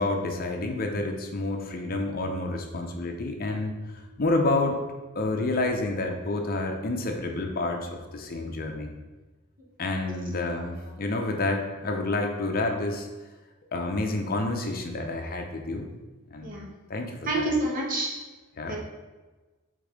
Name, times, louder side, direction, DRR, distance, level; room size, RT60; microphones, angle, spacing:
voice 1, 0.0-3.7 4.2-4.8 5.1-8.9 9.8-13.1 13.7-15.9 16.3-16.6 16.9-17.5 18.6-18.7, left 2 dB, 45° left, 3 dB, 0.6 m, -29 dB
voice 2, 17.3-18.1 18.7-18.8, right 2 dB, 40° right, -3 dB, 1.3 m, -28 dB
5.2 x 3.7 x 5.0 m, 1.2 s
head